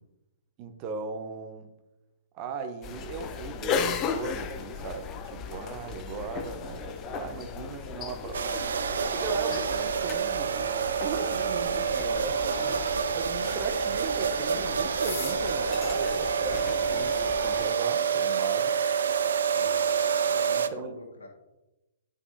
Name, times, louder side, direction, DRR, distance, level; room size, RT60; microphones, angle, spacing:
voice 1, 0.6-1.7 2.3-8.4 8.8-10.7 11.0-11.9 12.2-12.9 13.1-18.7 20.5-21.0, right 4 dB, 35° right, 7 dB, 0.8 m, -37 dB
sound 1, 2.8-17.7, left 6 dB, 25° left, 0.6 m, -36 dB
sound 2, 8.3-20.7, right 6 dB, 65° right, 0.4 m, -27 dB
voice 2, 11.4-12.3 19.5-19.8 20.3-21.3, left 2 dB, 80° left, -1 dB, 1.7 m, -46 dB
9.8 x 5.3 x 2.7 m, 0.99 s
figure-of-eight pair, 120°, 0 cm